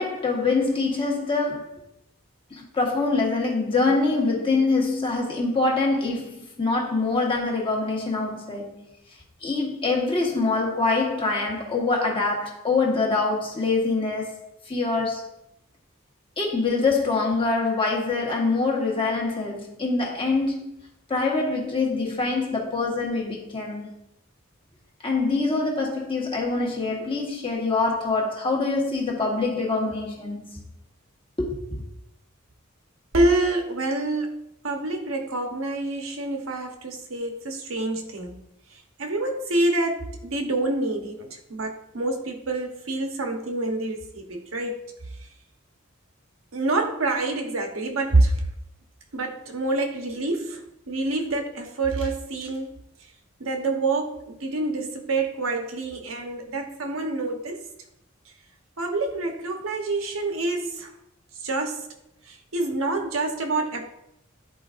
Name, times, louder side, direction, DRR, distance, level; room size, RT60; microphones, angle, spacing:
voice 1, 0.0-1.7 2.5-8.9 9.4-15.3 16.4-20.7 21.1-23.9 25.0-30.6 31.4-31.5, left 3 dB, 25° left, 1.4 m, -25 dB
voice 2, 33.1-34.4 34.6-38.4 39.0-44.8 46.5-48.4 49.1-52.8 53.4-57.6 58.8-60.9 61.4-61.9 62.3-63.9, right 2 dB, 85° right, 1.0 m, -27 dB
10.5 x 4.6 x 2.5 m
head